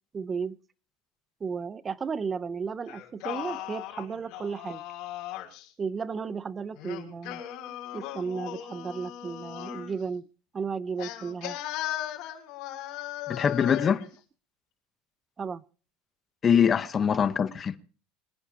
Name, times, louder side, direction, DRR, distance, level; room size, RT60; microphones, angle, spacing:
voice 1, 0.1-0.6 1.4-4.8 5.8-7.4 7.9-10.2 10.5-11.6 15.4-15.6 17.4-17.5, right 5 dB, 20° right, 0.7 m, -34 dB
Singing, 2.9-5.7 6.8-10.0 11.0-14.1, left 13 dB, 60° left, 5.6 m, -38 dB
voice 2, 13.3-14.0 16.4-17.8, left 7 dB, 25° left, 1.0 m, -23 dB
26.5 x 9.9 x 2.9 m
supercardioid pair, 140°, 0 cm